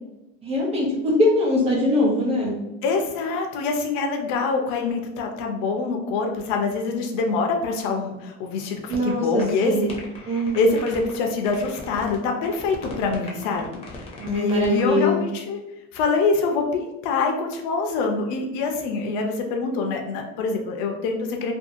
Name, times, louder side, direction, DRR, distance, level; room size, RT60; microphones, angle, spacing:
voice 1, 0.4-2.6 8.9-9.9 10.3-10.7 14.2-15.3, left 1 dB, 20° right, -3 dB, 0.7 m, -22 dB
voice 2, 2.8-9.9 10.5-15.6 15.9-21.5, left 4 dB, 85° left, 3 dB, 0.6 m, -25 dB
sound 1, 8.9-9.1 9.4-9.5 9.9-11.2 11.4-12.2 12.4-14.9, left 3 dB, 20° left, 0.5 m, -39 dB
2.6 x 2.3 x 2.5 m, 0.96 s
cardioid pair, 155°, 31 cm